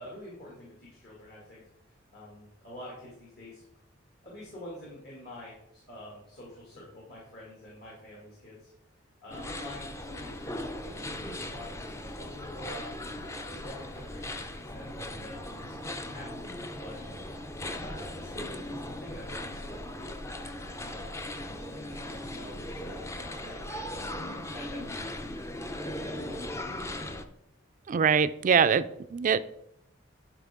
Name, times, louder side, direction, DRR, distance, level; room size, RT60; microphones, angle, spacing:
voice 1, 0.0-1.6 2.1-3.6 4.2-8.7 9.2-15.8 16.1-17.0 17.8-26.7, left 1 dB, 55° left, -5 dB, 2.4 m, -47 dB
sound 1, 9.3-27.3, left 1 dB, 15° left, 0.5 m, -38 dB
voice 2, 27.9-28.8 29.1-29.4, right 6 dB, 40° right, 14 dB, 0.3 m, -23 dB
11.5 x 4.9 x 3.7 m, 0.81 s
head